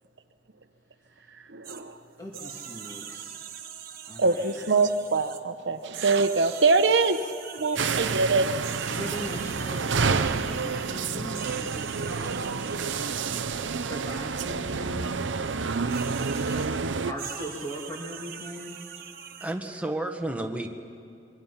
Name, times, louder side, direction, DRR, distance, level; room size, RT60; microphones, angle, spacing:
voice 1, 1.5-1.9 4.2-7.2 7.5-8.5, right 4 dB, 70° right, 8 dB, 1.1 m, -23 dB
sound 1, 1.6-1.8 2.3-5.4 5.8-8.2 8.6-14.0 15.9-16.7 17.2-19.5, right 8 dB, 50° right, 1.4 m, -42 dB
voice 2, 2.2-3.4 4.1-4.5 8.8-12.4 13.8-15.2 17.1-18.8, equal, 20° left, -2 dB, 2.2 m, -39 dB
sound 2, 7.8-17.1, right 5 dB, 90° right, 0.7 m, -29 dB
voice 3, 19.4-20.7, right 1 dB, 5° right, 3 dB, 1.5 m, -31 dB
27.0 x 24.0 x 5.8 m, 2.5 s
head